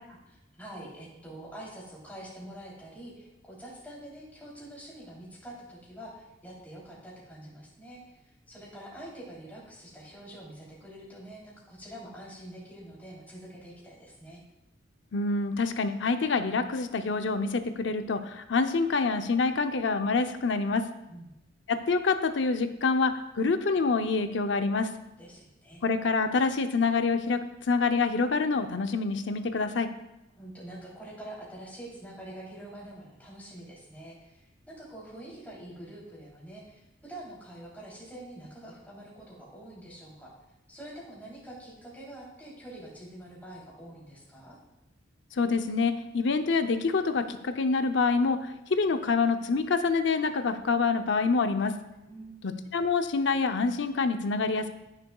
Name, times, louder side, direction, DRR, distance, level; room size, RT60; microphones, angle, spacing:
voice 1, 0.1-14.4 21.1-21.3 25.2-25.8 30.4-40.3 40.7-44.6 52.1-52.6, right 1 dB, 10° left, -6 dB, 3.3 m, -46 dB
voice 2, 15.1-20.8 21.7-24.9 25.8-29.9 45.3-51.7 52.4-54.7, left 4 dB, 65° left, 8 dB, 0.6 m, -26 dB
14.0 x 6.7 x 2.3 m, 0.94 s
head